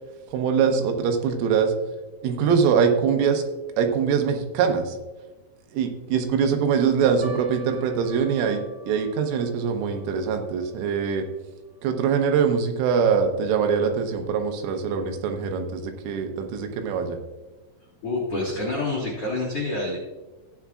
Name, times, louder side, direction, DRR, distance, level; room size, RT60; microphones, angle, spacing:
voice 1, 0.3-1.7 2.2-3.4 3.8-5.0 5.7-11.3 11.8-17.2, right 6 dB, 85° right, 5 dB, 3.5 m, -23 dB
sound 1, 7.2-13.7 14.0-14.1 14.8-15.1 15.7-15.8 16.1-16.3, right 1 dB, 30° right, 1.8 m, -47 dB
voice 2, 18.0-20.0, left 2 dB, 85° left, -5 dB, 1.3 m, -27 dB
14.0 x 9.2 x 2.4 m, 1.2 s
omnidirectional pair, 5.8 m